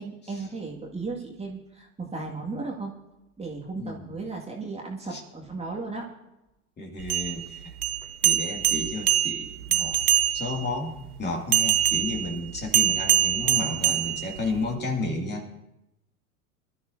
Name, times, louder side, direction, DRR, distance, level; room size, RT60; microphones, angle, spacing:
voice 1, 0.0-2.9 3.4-6.1, right 3 dB, 15° right, -1 dB, 2.0 m, -35 dB
voice 2, 3.8-4.1 5.1-5.2 6.8-7.7 8.2-10.0 10.3-10.9 11.2-15.5, left 2 dB, 25° left, 2 dB, 2.4 m, -32 dB
sound 1, 7.0-10.7 11.5-14.7, right 11 dB, 90° right, 0.8 m, -24 dB
23.5 x 12.5 x 2.7 m, 0.93 s
hypercardioid pair, 90°, 43 cm